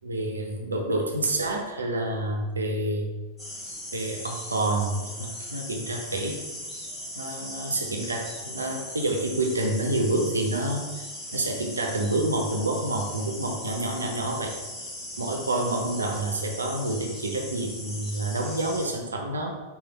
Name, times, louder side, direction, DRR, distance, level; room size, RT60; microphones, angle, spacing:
voice 1, 0.0-3.1 3.9-6.4 7.2-11.0 11.3-14.6 15.2-19.5, right 1 dB, 75° right, 2 dB, 0.4 m, -28 dB
sound 1, 3.4-18.9, left 1 dB, 15° left, 1.1 m, -39 dB
3.2 x 2.4 x 3.7 m, 1.2 s
figure-of-eight pair, 90°, 0 cm